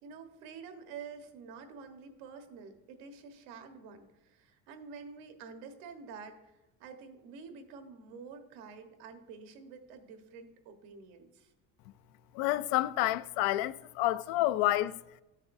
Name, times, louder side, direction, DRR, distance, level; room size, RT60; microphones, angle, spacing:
voice 1, 0.0-11.5, right 5 dB, 90° right, 1.3 m, -48 dB
voice 2, 12.3-15.0, left 15 dB, 90° left, 0.5 m, -29 dB
13.0 x 7.4 x 2.6 m
cardioid pair, 165°, 34 cm